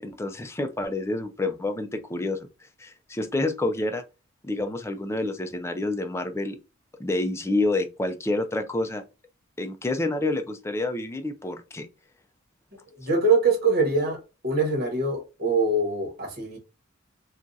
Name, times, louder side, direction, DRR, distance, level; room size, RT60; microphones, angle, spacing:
voice 1, 0.0-2.5 2.8-4.0 4.4-6.6 7.0-9.0 9.6-11.9, left 2 dB, 15° left, 0.4 m, -28 dB
voice 2, 13.1-14.2 14.4-16.6, right 3 dB, 50° right, 1.1 m, -23 dB
2.5 x 2.4 x 3.9 m
head